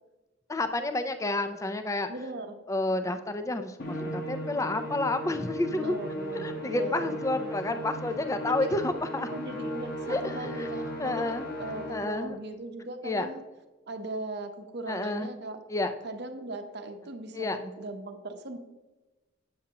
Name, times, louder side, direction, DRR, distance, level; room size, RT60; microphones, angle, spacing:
voice 1, 0.5-2.1 2.7-6.0 6.3-9.3 10.1-10.7 11.0-11.4 11.9-12.3 13.0-13.3 14.9-15.3 15.7-15.9 17.3-17.6, left 2 dB, 15° left, 8 dB, 0.4 m, -30 dB
voice 2, 2.1-2.6 3.0-3.1 5.7-7.9 8.5-8.7 9.3-13.4 13.9-15.6 16.0-18.6, right 2 dB, 55° right, 6 dB, 0.7 m, -39 dB
Musical instrument, 3.8-12.3, equal, 50° left, 1.0 m, -37 dB
8.7 x 7.1 x 2.9 m, 1.2 s
head